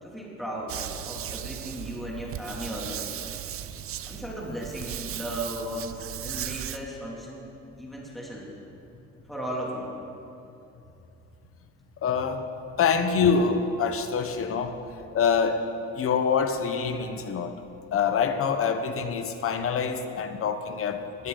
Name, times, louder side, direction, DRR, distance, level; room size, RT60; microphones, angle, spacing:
voice 1, 0.0-3.2 4.1-7.5 7.8-8.5 9.3-9.9, right 1 dB, ahead, -4 dB, 2.9 m, -36 dB
sound 1, 0.7-6.8, right 10 dB, 50° right, 0.6 m, -37 dB
voice 2, 12.0-12.5 12.8-14.8 15.1-15.7 15.9-17.5 17.9-21.3, left 6 dB, 50° left, 8 dB, 1.1 m, -25 dB
20.5 x 16.0 x 4.0 m, 2.7 s
cardioid pair, 180°, 29 cm